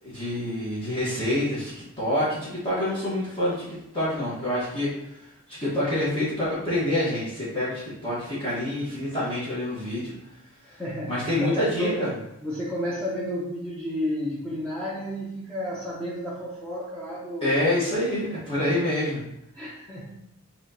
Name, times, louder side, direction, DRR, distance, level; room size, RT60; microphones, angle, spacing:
voice 1, 0.0-10.1 11.1-12.1 17.4-19.2, left 1 dB, 25° left, -9 dB, 1.4 m, -27 dB
voice 2, 10.7-11.5 11.8-12.1 12.4-17.6 18.6-18.8 19.5-20.2, equal, 5° left, -7 dB, 0.7 m, -32 dB
6.0 x 3.1 x 2.8 m, 0.84 s
head